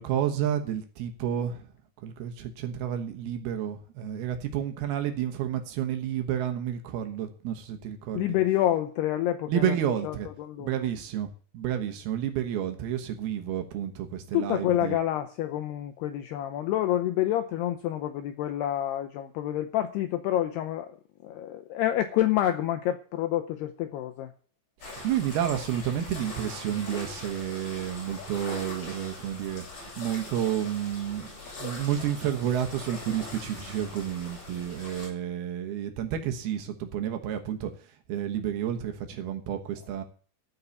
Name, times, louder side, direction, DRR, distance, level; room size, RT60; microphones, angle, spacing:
voice 1, 0.0-1.7 2.0-8.4 9.5-10.3 10.6-15.0 24.8-31.3 31.6-40.0, right 10 dB, 70° right, 6 dB, 2.6 m, -30 dB
voice 2, 8.1-9.8 10.0-10.1 10.4-10.7 14.3-21.0 21.2-24.3, left 12 dB, 90° left, 6 dB, 2.3 m, -28 dB
sound 1, 24.8-35.1, left 2 dB, 40° left, 9.6 m, -42 dB
15.0 x 5.6 x 8.3 m, 0.43 s
omnidirectional pair, 5.6 m